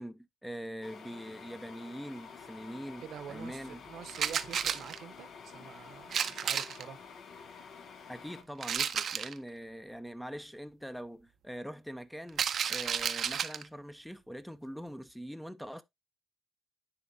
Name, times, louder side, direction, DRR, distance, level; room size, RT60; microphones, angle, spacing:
voice 1, 0.0-3.8 8.1-12.4 12.7-15.8, equal, ahead, 0.5 m, -43 dB
sound 1, 0.8-8.4, left 5 dB, 65° left, 0.8 m, -50 dB
voice 2, 3.0-7.0, right 8 dB, 75° right, 0.8 m, -47 dB
sound 2, 4.1-5.0 6.1-6.8 8.6-9.4 12.3-13.7, right 8 dB, 60° right, 0.5 m, -32 dB
9.8 x 3.6 x 2.7 m
cardioid pair, 90°, 0 cm